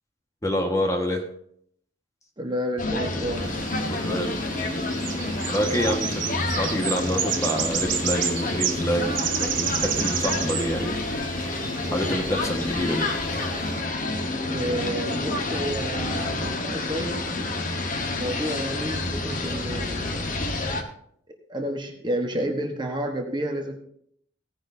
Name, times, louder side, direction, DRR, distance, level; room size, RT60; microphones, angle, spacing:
voice 1, 0.4-1.2 3.9-4.4 5.5-10.9 11.9-13.1, equal, 15° left, 2 dB, 1.5 m, -27 dB
voice 2, 2.4-3.5 14.5-17.2 18.1-20.2 21.5-23.7, equal, 25° right, 3 dB, 1.2 m, -30 dB
sound 1, 2.8-20.8, left 2 dB, 45° left, 1.3 m, -29 dB
sound 2, 3.3-13.8, right 8 dB, 75° right, 1.7 m, -32 dB
16.5 x 10.0 x 2.8 m, 0.68 s
head